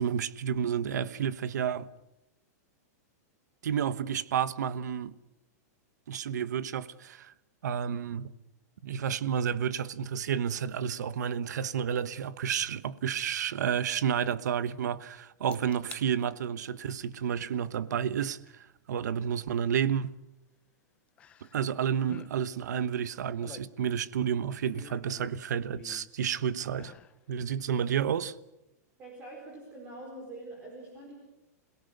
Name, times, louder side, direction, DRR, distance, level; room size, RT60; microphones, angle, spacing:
voice 1, 0.0-1.9 3.6-5.1 6.1-7.3 7.6-8.3 8.8-20.1 21.5-26.9 27.3-28.3, right 8 dB, 85° right, 1.2 m, -31 dB
sound 1, 15.5-16.1 16.5-16.9 18.5-18.6 21.2-21.7 22.0-22.3 23.1-24.2 24.7-26.2 26.7-27.2 27.6-27.7, left 8 dB, 15° left, 0.8 m, -50 dB
voice 2, 29.0-31.1, right 2 dB, 15° right, 4.6 m, -44 dB
28.0 x 17.5 x 8.0 m
supercardioid pair, 180°, 9 cm